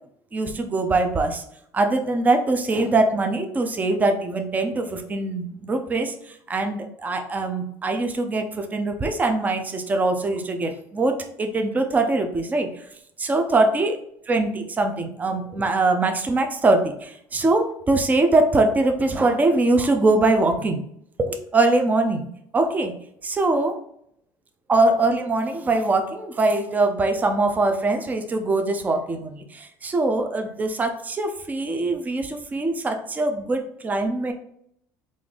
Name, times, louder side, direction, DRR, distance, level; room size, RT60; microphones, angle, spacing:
voice 1, 0.3-1.4 1.7-12.7 13.2-14.0 14.3-20.8 21.2-22.3 22.5-23.0 23.2-23.7 24.7-34.3, right 2 dB, 20° right, 5 dB, 0.5 m, -22 dB
3.7 x 2.5 x 3.4 m, 0.70 s
supercardioid pair, 110°, 8 cm